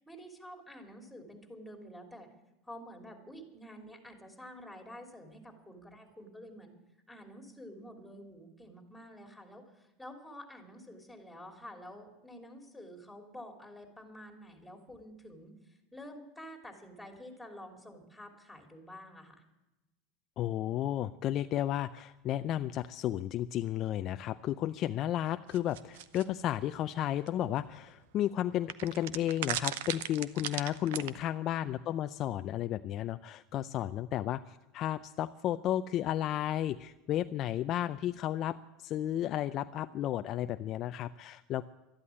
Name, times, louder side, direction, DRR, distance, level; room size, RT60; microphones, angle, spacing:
voice 1, 0.0-2.3 2.6-6.7 7.1-19.4 30.1-30.3 30.8-31.3 33.8-33.9, equal, 5° left, 2 dB, 3.1 m, -49 dB
voice 2, 20.4-41.6, left 12 dB, 45° left, 10 dB, 0.4 m, -33 dB
sound 1, 25.5-26.2 27.3-27.4 27.6-27.7 28.7-31.1, right 11 dB, 80° right, 0.7 m, -36 dB
12.5 x 11.0 x 9.8 m, 1.0 s
supercardioid pair, 120°, 0 cm